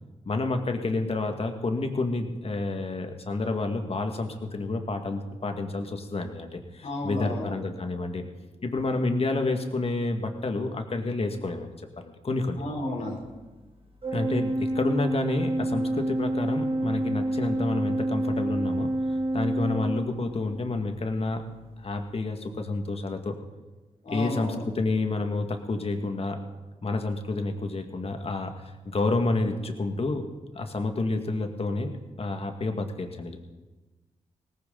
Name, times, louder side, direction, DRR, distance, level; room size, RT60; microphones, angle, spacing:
voice 1, 0.3-8.2 8.6-12.6 14.1-21.4 21.8-23.3 24.1-26.4 26.8-30.3 30.5-31.9 32.2-33.4, left 3 dB, 50° left, 5 dB, 2.0 m, -29 dB
voice 2, 6.8-7.5 12.6-13.2 24.0-24.6, left 1 dB, 65° left, -2 dB, 3.6 m, -32 dB
Organ, 14.0-20.6, right 1 dB, 45° right, 2.7 m, -28 dB
18.0 x 15.5 x 4.0 m, 1.2 s
cardioid pair, 55°, 13 cm